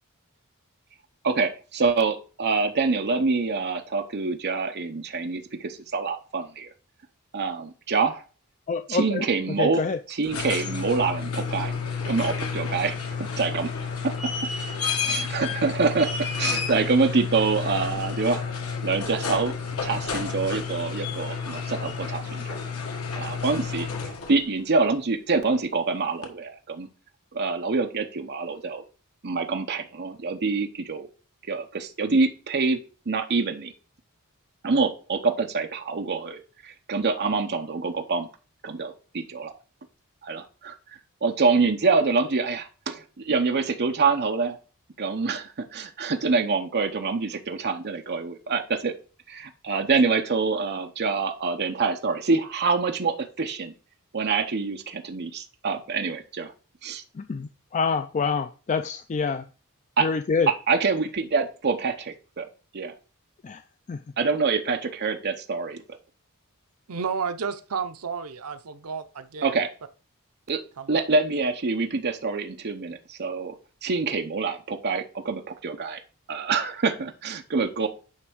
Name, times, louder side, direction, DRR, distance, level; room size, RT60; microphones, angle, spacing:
voice 1, 1.2-6.7 7.3-8.2 8.9-9.8 10.1-11.7 12.1-12.9 13.4-13.7 14.0-14.3 15.0-18.5 18.8-19.5 19.8-22.6 23.2-23.9 24.3-26.9 27.3-28.8 29.2-31.1 31.5-33.7 34.6-38.3 38.6-39.5 40.2-40.7 41.2-44.6 45.0-48.9 49.3-53.7 54.1-56.5 56.8-57.0 60.0-60.1 60.5-62.5 62.7-62.9 64.2-66.0 69.4-69.7 70.5-70.6 70.9-76.0 76.3-77.9, right 4 dB, 50° right, 0.8 m, -26 dB
voice 2, 8.7-9.3 9.6-10.0 57.1-59.5 60.0-60.5 63.4-63.6 63.9-64.0, left 5 dB, 35° left, 0.4 m, -26 dB
sound 1, 10.1-24.5 26.2-26.3, left 5 dB, 75° left, 1.6 m, -31 dB
voice 3, 66.9-69.5 70.8-71.0, right 6 dB, 80° right, 0.7 m, -32 dB
9.7 x 3.4 x 6.2 m
head